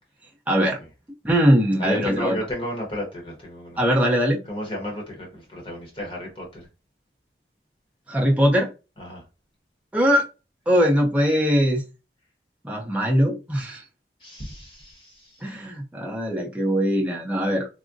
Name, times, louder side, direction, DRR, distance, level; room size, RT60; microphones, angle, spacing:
voice 1, 0.5-0.8 1.2-2.4 3.8-4.4 8.1-8.7 9.9-10.2 10.7-11.8 12.6-13.8 15.4-17.7, equal, 10° right, 0.6 m, -21 dB
voice 2, 1.8-3.8 4.5-6.6 9.0-9.2 14.2-15.1, equal, 30° left, 0.9 m, -32 dB
3.5 x 2.0 x 2.5 m
head